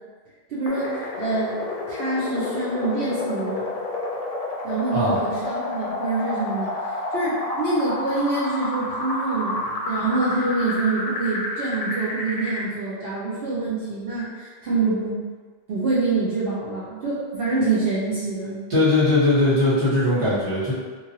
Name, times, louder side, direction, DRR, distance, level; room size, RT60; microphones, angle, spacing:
voice 1, 0.5-1.6 1.9-3.7 4.6-6.7 7.1-15.2 15.7-18.6, right 3 dB, 70° right, -8 dB, 0.8 m, -26 dB
sound 1, 0.7-12.7, left 2 dB, 55° left, 0.4 m, -30 dB
voice 2, 18.7-20.7, left 2 dB, 30° right, -10 dB, 1.1 m, -19 dB
3.0 x 2.4 x 2.8 m, 1.5 s
omnidirectional pair, 1.1 m